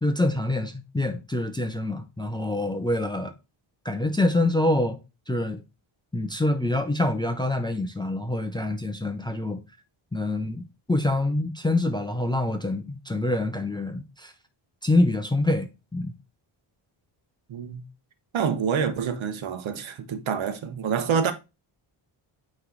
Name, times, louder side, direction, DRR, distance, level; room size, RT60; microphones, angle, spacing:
voice 1, 0.0-3.3 3.8-5.0 5.3-5.6 6.1-9.6 10.1-14.3 14.8-16.1, left 2 dB, 10° left, 0.5 m, -26 dB
voice 2, 17.5-17.8 18.3-21.3, right 7 dB, 70° right, 1.0 m, -27 dB
8.6 x 3.2 x 3.8 m
wide cardioid pair, 175°, 49 cm